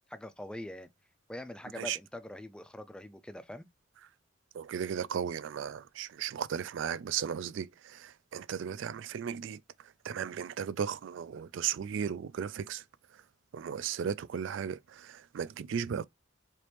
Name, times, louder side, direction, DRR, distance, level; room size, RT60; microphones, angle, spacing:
voice 1, 0.1-0.9 1.3-3.7, left 1 dB, 5° left, 0.3 m, -43 dB
voice 2, 4.5-12.8 13.1-13.2 13.5-16.0, right 8 dB, 75° right, 0.3 m, -36 dB
3.3 x 3.0 x 2.8 m
head